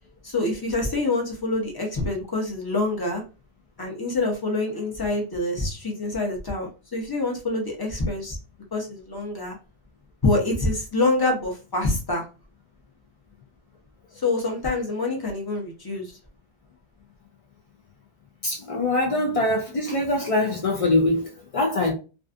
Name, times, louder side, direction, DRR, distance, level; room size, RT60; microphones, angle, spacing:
voice 1, 0.2-3.2 3.8-8.4 8.7-9.6 10.2-12.2 14.2-16.1, left 2 dB, 25° left, 0.6 m, -26 dB
voice 2, 18.4-21.9, left 2 dB, 65° left, 0.3 m, -23 dB
2.4 x 2.4 x 2.4 m
omnidirectional pair, 1.2 m